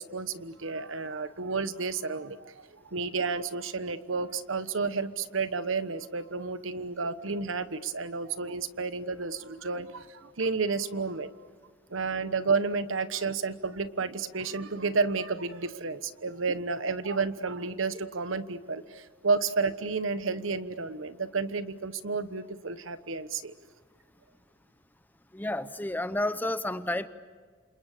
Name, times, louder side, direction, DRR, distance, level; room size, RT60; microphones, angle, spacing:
voice 1, 0.0-11.3 11.9-23.5, right 4 dB, 85° right, 12 dB, 1.2 m, -31 dB
voice 2, 25.3-27.1, left 1 dB, 10° left, 12 dB, 0.7 m, -30 dB
29.0 x 27.5 x 6.8 m, 1.6 s
head